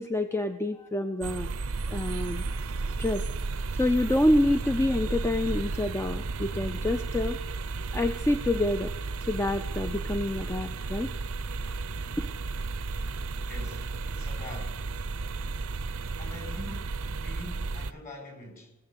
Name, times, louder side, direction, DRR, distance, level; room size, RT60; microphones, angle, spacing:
voice 1, 0.0-1.5 1.9-2.4 3.0-3.2 3.8-7.4 7.9-8.9 9.2-11.1 12.2-12.3, left 1 dB, 10° left, 0.5 m, -27 dB
sound 1, 1.2-17.9, right 3 dB, 65° right, 0.6 m, -33 dB
voice 2, 13.5-14.9 16.2-18.7, left 2 dB, 40° left, 4.5 m, -44 dB
19.5 x 7.5 x 8.0 m
head